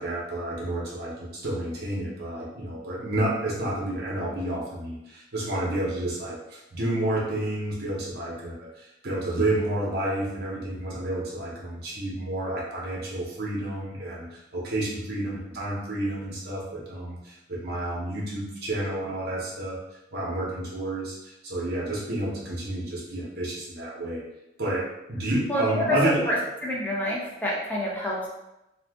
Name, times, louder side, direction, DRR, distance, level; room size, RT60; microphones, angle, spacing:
voice 1, 0.0-19.8 20.1-24.2 24.6-26.4, right 1 dB, 55° right, -5 dB, 0.8 m, -30 dB
voice 2, 25.5-26.0 26.3-28.3, equal, 10° left, -6 dB, 0.6 m, -28 dB
2.5 x 2.4 x 3.5 m, 0.90 s
head